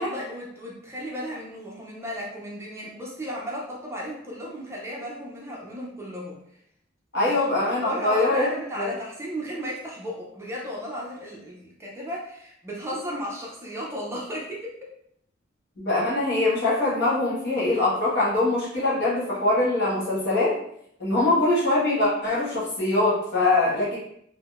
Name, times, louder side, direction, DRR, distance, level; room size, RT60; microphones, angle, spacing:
voice 1, 0.0-6.4 7.2-14.9 21.2-21.4, equal, 15° right, -4 dB, 0.5 m, -35 dB
voice 2, 7.1-8.5 8.7-8.9 15.8-20.5 21.0-24.0, left 2 dB, 60° left, -7 dB, 1.3 m, -23 dB
3.6 x 2.0 x 2.4 m, 0.72 s
head